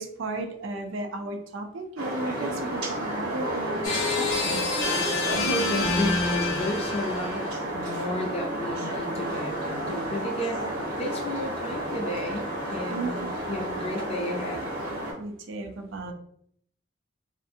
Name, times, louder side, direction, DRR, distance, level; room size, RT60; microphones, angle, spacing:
voice 1, 0.0-4.7 12.9-13.3 15.2-16.1, right 2 dB, 65° right, 5 dB, 0.5 m, -34 dB
sound 1, 2.0-15.1, right 1 dB, 85° right, 1.3 m, -32 dB
sound 2, 3.8-7.5, left 3 dB, 80° left, 0.6 m, -28 dB
voice 2, 5.4-7.4 7.7-10.7 11.0-14.6, left 1 dB, 30° left, 2 dB, 0.4 m, -32 dB
2.5 x 2.4 x 2.6 m, 0.65 s
head